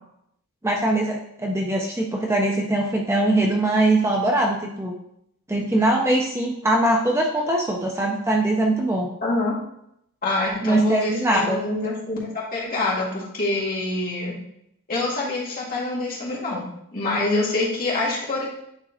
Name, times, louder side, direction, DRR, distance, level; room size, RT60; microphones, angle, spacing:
voice 1, 0.6-4.9 5.5-9.1 10.6-11.6, right 1 dB, 10° right, 0 dB, 0.5 m, -22 dB
voice 2, 9.2-9.6 10.2-14.3 14.9-16.7 16.9-18.5, left 2 dB, 45° left, -6 dB, 2.1 m, -25 dB
9.4 x 3.7 x 2.7 m, 0.76 s
head